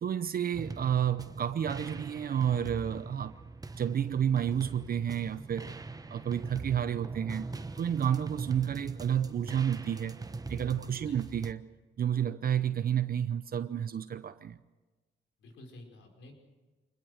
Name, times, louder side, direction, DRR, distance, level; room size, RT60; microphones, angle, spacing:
voice 1, 0.0-3.4 3.8-5.7 6.1-10.2 10.5-11.7 12.0-14.6, right 9 dB, 50° right, 0.8 m, -30 dB
sound 1, 0.5-11.5, right 3 dB, 20° right, 1.1 m, -42 dB
voice 2, 10.9-11.2 15.4-16.4, left 1 dB, 80° left, 4.9 m, -51 dB
26.0 x 21.0 x 6.5 m
cardioid pair, 90°, 20 cm